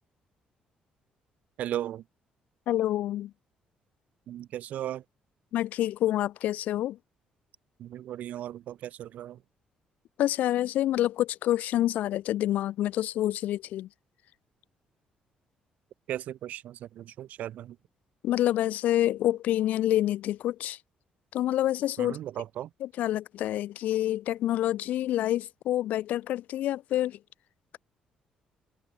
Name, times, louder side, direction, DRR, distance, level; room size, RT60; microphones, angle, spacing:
voice 1, 1.6-2.0 4.3-5.0 7.8-9.4 16.1-17.8 22.0-22.7, right 12 dB, 70° right, 2.8 m, -36 dB
voice 2, 2.7-3.3 5.5-7.0 10.2-13.9 18.2-20.8 21.3-22.2 22.8-27.2, left 13 dB, 80° left, 3.3 m, -27 dB
cardioid pair, 125°, 3 cm